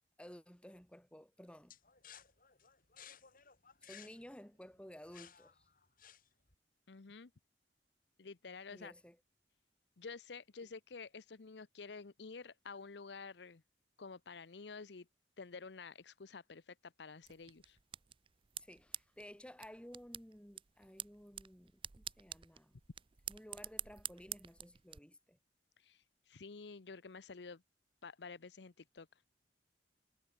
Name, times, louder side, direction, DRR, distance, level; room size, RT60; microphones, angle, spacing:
voice 1, 0.2-1.7 3.8-5.7 8.7-9.2 18.6-22.8 23.3-25.4, equal, 5° left, 2.9 m, -55 dB
sound 1, 1.7-6.5, left 8 dB, 55° left, 7.0 m, -58 dB
voice 2, 6.9-7.3 8.2-8.9 10.0-13.6 14.0-15.1 15.4-17.8 25.8-27.6 28.0-29.1, left 4 dB, 75° left, 0.8 m, -50 dB
sound 2, 17.2-25.0, right 10 dB, 30° right, 0.5 m, -49 dB
head